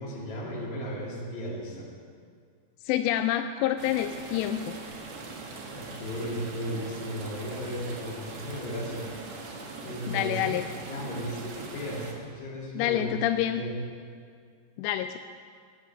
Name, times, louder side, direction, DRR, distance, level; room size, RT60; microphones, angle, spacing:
voice 1, 0.0-1.9 5.7-9.1 9.8-10.6 10.9-13.1 13.5-13.7, equal, 45° left, -5 dB, 4.1 m, -35 dB
voice 2, 2.9-4.8 10.1-10.7 12.8-13.6 14.8-15.2, left 12 dB, 85° left, 8 dB, 2.7 m, -27 dB
sound 1, 3.8-12.1, right 3 dB, 70° right, 3.4 m, -41 dB
16.0 x 9.8 x 6.4 m, 2.1 s
omnidirectional pair, 4.9 m